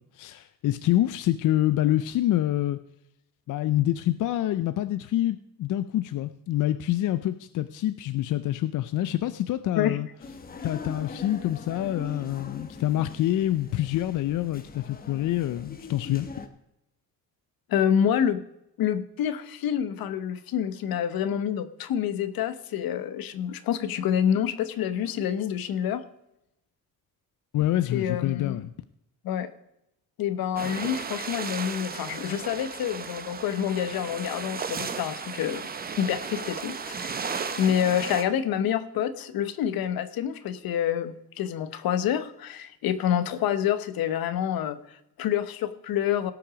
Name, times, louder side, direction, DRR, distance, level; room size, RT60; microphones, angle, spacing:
voice 1, 0.0-2.8 3.5-10.1 10.6-16.3 27.5-28.7, left 13 dB, 60° left, 13 dB, 0.5 m, -26 dB
sound 1, 10.2-16.5, left 4 dB, 25° left, 0.9 m, -42 dB
voice 2, 17.7-18.4 18.8-26.0 27.9-28.6 29.2-29.5 30.2-35.7 36.0-37.2 37.6-46.3, left 9 dB, 75° left, 13 dB, 0.9 m, -27 dB
sound 2, 30.6-38.2, right 5 dB, 25° right, 0.8 m, -35 dB
18.0 x 6.0 x 5.0 m, 0.85 s
cardioid pair, 145°, 36 cm